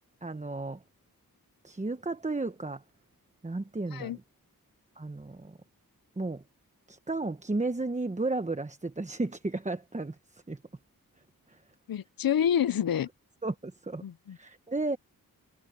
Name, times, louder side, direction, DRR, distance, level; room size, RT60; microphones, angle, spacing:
voice 1, 0.2-0.8 1.6-2.8 3.4-4.2 5.0-5.6 6.2-6.4 6.9-10.6 11.5-11.6 13.4-14.0 14.3-15.0, right 2 dB, 20° right, 1.1 m, -33 dB
voice 2, 11.9-13.1 14.0-14.4, left 9 dB, 70° left, 0.7 m, -28 dB
wide cardioid pair, 100°, 36 cm